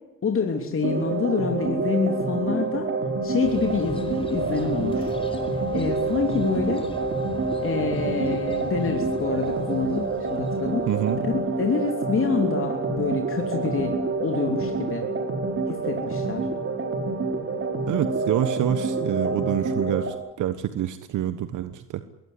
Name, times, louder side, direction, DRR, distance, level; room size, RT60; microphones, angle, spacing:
voice 1, 0.2-2.9 3.2-5.1 5.7-6.8 7.6-10.9 11.2-14.0 14.2-15.0 15.7-16.5, left 5 dB, 45° left, 3 dB, 3.3 m, -27 dB
sound 1, 0.8-20.1, right 3 dB, 45° right, 4.3 m, -27 dB
sound 2, 3.4-11.5, left 2 dB, 20° left, 4.6 m, -41 dB
voice 2, 10.9-11.2 17.9-22.0, right 11 dB, 80° right, 12 dB, 1.3 m, -27 dB
22.5 x 17.0 x 9.9 m, 0.97 s
cardioid pair, 90°, 30 cm